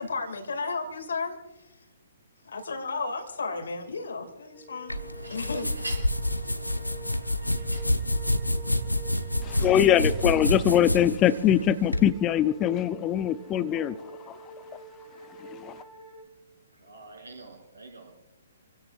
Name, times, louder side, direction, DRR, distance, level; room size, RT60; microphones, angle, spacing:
voice 1, 0.0-1.4 2.4-5.0 5.3-5.7 6.4-6.5 9.7-9.8, left 4 dB, 60° left, 7 dB, 2.4 m, -33 dB
sound 1, 4.5-16.2, right 1 dB, 5° right, 2.1 m, -48 dB
sound 2, 4.9-12.1, left 1 dB, 85° left, 1.0 m, -28 dB
voice 2, 5.2-5.5 5.8-6.0 7.5-7.8 9.6-9.7 16.7-18.1, right 2 dB, 70° right, -1 dB, 6.3 m, -43 dB
voice 3, 9.4-14.0 15.6-15.7, left 10 dB, 20° left, 14 dB, 0.7 m, -22 dB
28.5 x 16.5 x 2.5 m, 1.1 s
figure-of-eight pair, 125°, 0 cm